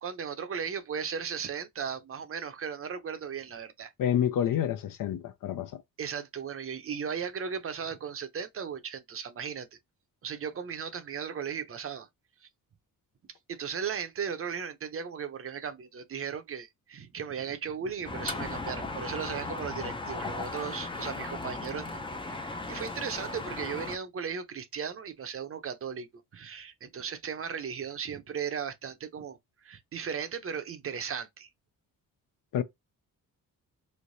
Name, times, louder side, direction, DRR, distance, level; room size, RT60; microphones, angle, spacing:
voice 1, 0.0-3.9 6.0-9.8 10.2-12.1 13.5-26.1 26.3-31.5, right 7 dB, 40° right, 0.6 m, -36 dB
voice 2, 4.0-5.8 32.5-32.6, left 10 dB, 70° left, 0.6 m, -28 dB
sound 1, 18.0-24.0, left 2 dB, 15° left, 0.4 m, -36 dB
3.2 x 2.8 x 2.6 m
cardioid pair, 110°, 34 cm